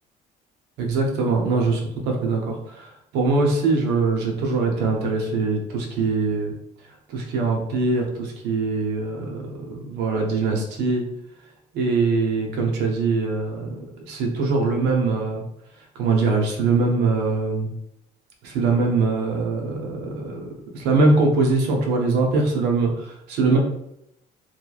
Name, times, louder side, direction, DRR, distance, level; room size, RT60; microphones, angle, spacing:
voice 1, 0.8-6.5 7.1-11.0 11.7-15.4 15.9-17.7 18.4-20.5 20.7-23.6, right 3 dB, 90° right, 1 dB, 0.7 m, -22 dB
3.0 x 2.3 x 2.3 m, 0.79 s
cardioid pair, 110°, 17 cm